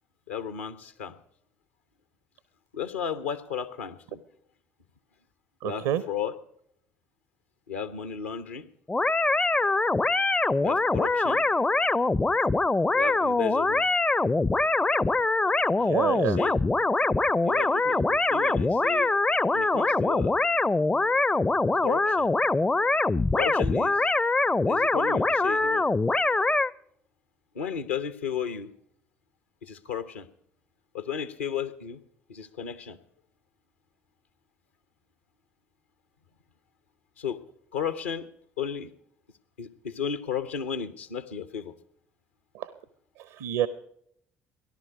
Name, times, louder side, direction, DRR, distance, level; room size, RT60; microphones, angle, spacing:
voice 1, 0.3-1.2 2.7-4.2 5.6-6.3 7.7-8.7 10.6-11.5 12.9-13.9 15.8-16.6 17.4-19.1 19.5-20.4 21.7-22.3 23.3-24.1 24.7-25.9 27.5-28.7 29.6-30.3 30.9-32.0 32.3-33.0 37.2-37.4 37.7-38.3 38.6-38.9 39.6-41.7, left 7 dB, 75° left, 12 dB, 0.9 m, -34 dB
voice 2, 5.6-6.0 15.8-16.4 42.5-42.7 43.2-43.7, right 12 dB, 65° right, 16 dB, 0.6 m, -28 dB
sound 1, 8.9-26.7, left 3 dB, 15° left, 0.5 m, -24 dB
17.0 x 11.5 x 5.1 m, 0.69 s
figure-of-eight pair, 50°, 7 cm